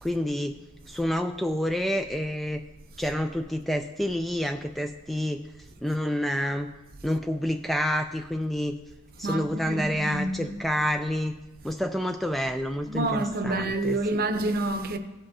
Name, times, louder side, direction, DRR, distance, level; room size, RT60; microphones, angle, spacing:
voice 1, 0.0-0.6 0.9-2.6 3.0-5.4 5.8-6.7 7.0-8.8 9.2-11.3 11.6-14.2, equal, ahead, 0.3 m, -28 dB
voice 2, 9.2-10.6 12.9-15.0, right 2 dB, 45° right, 0.7 m, -28 dB
16.5 x 7.7 x 2.8 m
head